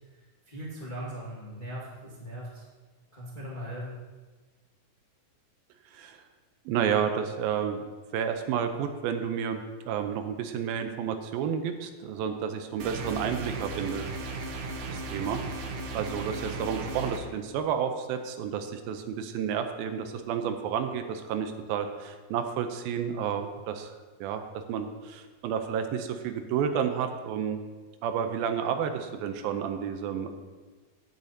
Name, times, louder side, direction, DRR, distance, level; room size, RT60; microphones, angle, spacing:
voice 1, 0.5-2.6 3.1-3.9, equal, 40° left, -6 dB, 0.7 m, -39 dB
voice 2, 6.7-14.2 14.9-15.6 15.9-23.9 24.2-24.4 24.7-27.6 28.0-30.3, right 7 dB, 85° right, 7 dB, 2.5 m, -31 dB
sound 1, 12.8-17.2, right 3 dB, 70° right, 2.1 m, -36 dB
15.0 x 9.1 x 2.8 m, 1.3 s
omnidirectional pair, 4.3 m